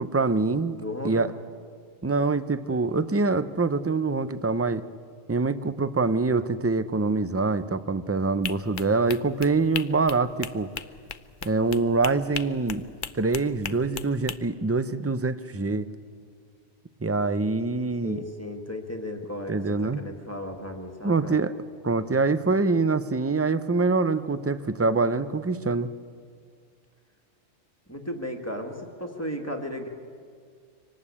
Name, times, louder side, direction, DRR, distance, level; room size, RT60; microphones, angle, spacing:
voice 1, 0.0-0.8 1.0-1.3 2.0-4.8 5.3-10.7 11.4-12.9 13.1-15.9 17.0-18.2 19.5-20.0 21.0-21.5 21.8-25.9, right 3 dB, 20° right, 13 dB, 0.4 m, -25 dB
voice 2, 0.7-1.3 18.0-21.4 27.9-29.9, left 1 dB, 10° left, 3 dB, 1.9 m, -35 dB
sound 1, 8.4-14.4, left 7 dB, 50° left, 0.8 m, -37 dB
24.5 x 19.0 x 8.6 m, 2.1 s
omnidirectional pair, 1.2 m